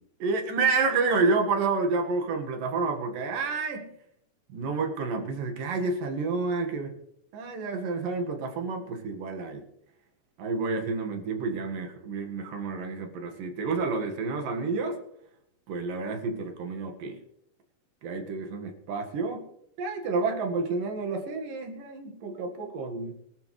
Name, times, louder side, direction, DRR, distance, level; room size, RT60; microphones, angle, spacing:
voice 1, 0.2-3.9 4.5-7.0 7.3-9.6 10.4-15.0 15.7-17.2 18.0-19.5 19.8-23.2, right 4 dB, 85° right, 4 dB, 3.5 m, -29 dB
23.5 x 12.0 x 3.3 m, 0.75 s
omnidirectional pair, 3.8 m